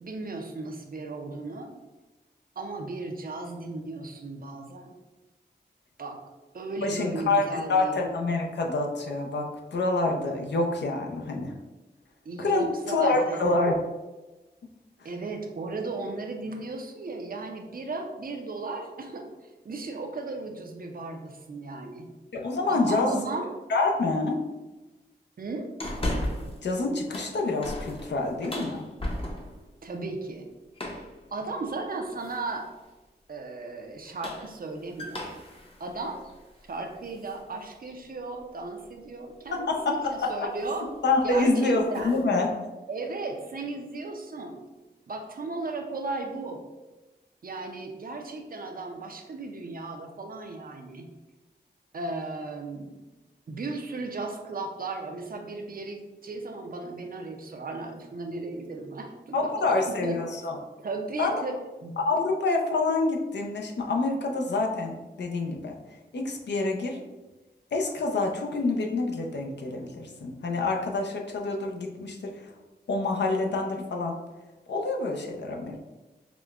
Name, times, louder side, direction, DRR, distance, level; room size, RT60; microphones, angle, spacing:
voice 1, 0.0-1.7 2.6-4.9 6.0-6.2 6.5-8.0 12.3-13.6 15.0-22.1 22.7-23.5 25.4-25.7 29.8-30.5 31.3-32.6 33.3-35.3 35.8-36.2 36.7-40.9 41.2-42.2 42.9-44.6 45.1-46.6 47.4-51.1 51.9-53.0 53.5-60.2 60.8-62.0, right 3 dB, 55° right, 4 dB, 0.5 m, -35 dB
voice 2, 6.8-11.5 12.4-13.8 22.3-23.2 23.7-24.4 26.6-28.9 39.5-40.5 41.0-42.5 59.3-60.6 61.2-61.3 62.0-65.8 66.1-67.0 67.7-72.5 72.9-74.1 74.7-75.8, left 3 dB, 75° left, 1 dB, 0.5 m, -27 dB
sound 1, 25.8-26.6 27.0-29.7 30.7-31.2 32.2-32.6 33.9-37.4 37.8-37.9 39.5-39.7 40.0-40.3 40.6-40.8 41.2-42.2, left 1 dB, 30° left, 0.7 m, -36 dB
4.8 x 2.1 x 2.4 m, 1.1 s
cardioid pair, 45°, 18 cm